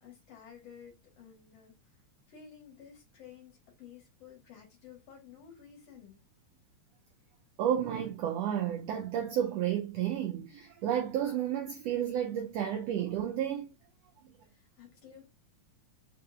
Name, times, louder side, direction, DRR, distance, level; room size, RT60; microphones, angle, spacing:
voice 1, 0.0-1.8 2.3-6.2 14.4-15.3, left 8 dB, 60° left, 2.2 m, -53 dB
voice 2, 7.6-13.7, right 10 dB, 90° right, 1.4 m, -31 dB
4.9 x 2.8 x 2.3 m
omnidirectional pair, 3.5 m